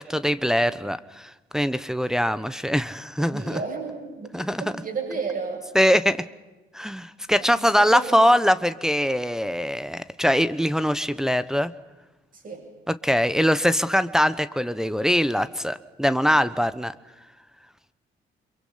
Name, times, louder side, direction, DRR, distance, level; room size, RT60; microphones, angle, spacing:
voice 1, 0.0-3.5 4.3-4.6 5.7-6.2 6.7-11.7 13.0-16.9, equal, 5° right, 11 dB, 1.0 m, -22 dB
voice 2, 3.2-5.6 7.4-8.2 12.3-12.6, right 4 dB, 45° right, 1 dB, 7.8 m, -33 dB
26.0 x 23.0 x 5.8 m, 1.1 s
cardioid pair, 90°, 20 cm